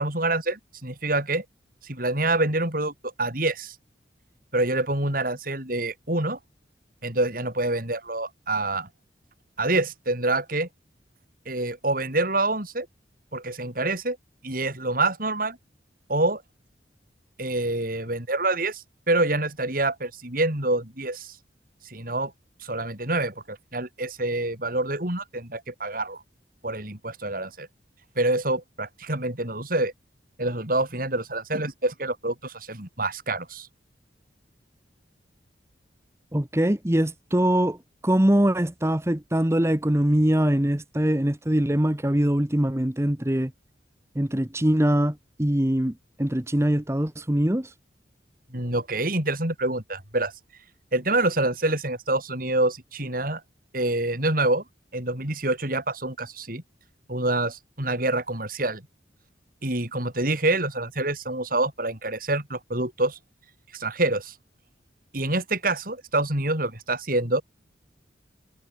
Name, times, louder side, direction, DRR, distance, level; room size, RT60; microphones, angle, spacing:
voice 1, 0.0-1.5 1.8-3.8 4.5-6.4 7.0-8.9 9.6-10.7 11.5-12.9 13.3-14.2 14.4-15.6 16.1-16.4 17.4-21.4 21.8-22.3 22.6-26.2 26.6-27.7 28.2-29.9 30.4-33.7 48.5-50.3 50.9-53.4 53.7-54.6 54.9-56.6 57.1-58.8 59.6-63.2 63.7-64.3 65.1-67.4, right 2 dB, 50° right, 7.1 m, -26 dB
voice 2, 36.3-37.8 38.0-43.5 44.1-45.9 46.2-47.7, right 1 dB, 15° right, 1.1 m, -23 dB
head